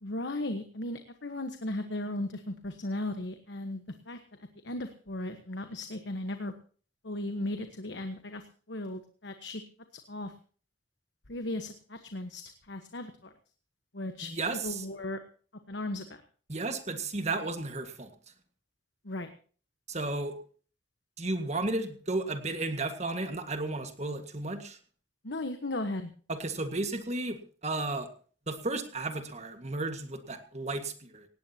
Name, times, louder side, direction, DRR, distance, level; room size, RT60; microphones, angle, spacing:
voice 1, 0.0-4.2 4.6-6.5 7.0-8.4 8.7-9.6 10.1-10.3 11.3-12.4 12.7-13.3 13.9-14.3 14.6-15.2 15.7-16.2 19.0-19.3 25.2-26.1, left 1 dB, 70° left, 7 dB, 1.3 m, -36 dB
voice 2, 14.3-14.8 16.5-18.1 19.9-20.3 21.2-24.8 26.3-28.1 28.5-31.3, right 2 dB, 35° right, 7 dB, 1.8 m, -33 dB
18.0 x 17.5 x 2.9 m, 0.41 s
head